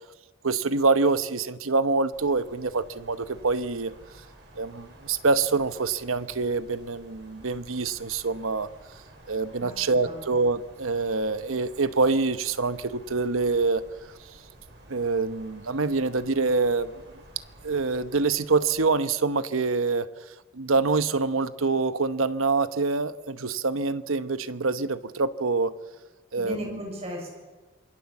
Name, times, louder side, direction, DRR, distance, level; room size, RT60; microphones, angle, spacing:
voice 1, 0.4-3.9 4.6-8.7 9.3-13.8 14.9-16.9 17.6-20.1 20.5-25.7 26.3-26.8, right 4 dB, 85° right, 12 dB, 1.0 m, -25 dB
Wind, 2.1-18.9, right 1 dB, 55° right, 6.0 m, -51 dB
voice 2, 26.4-27.3, equal, 30° right, 0 dB, 6.8 m, -36 dB
26.5 x 23.0 x 7.3 m, 1.3 s
head